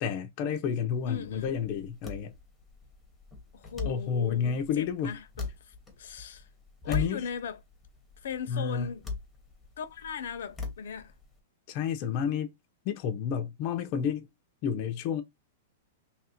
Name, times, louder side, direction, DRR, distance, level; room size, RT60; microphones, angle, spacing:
voice 1, 0.0-2.3 3.8-5.2 6.9-7.3 8.5-8.9 11.7-12.5 12.9-14.3 14.6-15.2, left 7 dB, 35° left, 0.5 m, -30 dB
sound 1, 0.9-11.4, left 4 dB, 5° left, 0.8 m, -41 dB
voice 2, 1.1-1.5 3.5-6.5 6.8-7.6 8.2-9.0 9.8-11.1, left 7 dB, 75° left, 0.6 m, -38 dB
2.9 x 2.5 x 4.2 m
supercardioid pair, 165°, 0 cm